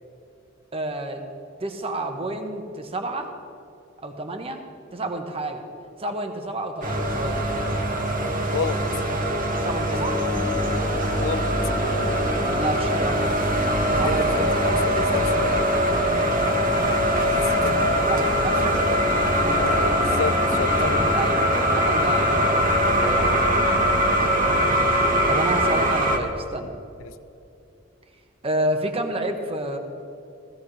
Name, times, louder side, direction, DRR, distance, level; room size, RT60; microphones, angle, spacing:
voice 1, 0.7-1.2 1.6-3.3 4.0-4.6 4.9-5.6 6.0-7.5 9.6-10.2 12.6-13.3 13.9-15.3 18.1-18.8 20.7-23.3 24.8-25.0 25.3-26.7 28.4-29.8, right 1 dB, 30° right, 4 dB, 1.2 m, -29 dB
sound 1, 6.8-26.2, equal, 45° right, 1.4 m, -22 dB
sound 2, 10.3-26.0, left 2 dB, 25° left, 0.5 m, -34 dB
voice 2, 14.0-15.5 17.3-17.8 19.6-21.0 27.0-27.1, left 6 dB, 90° left, 14 dB, 0.4 m, -31 dB
17.5 x 15.5 x 3.3 m, 2.7 s
head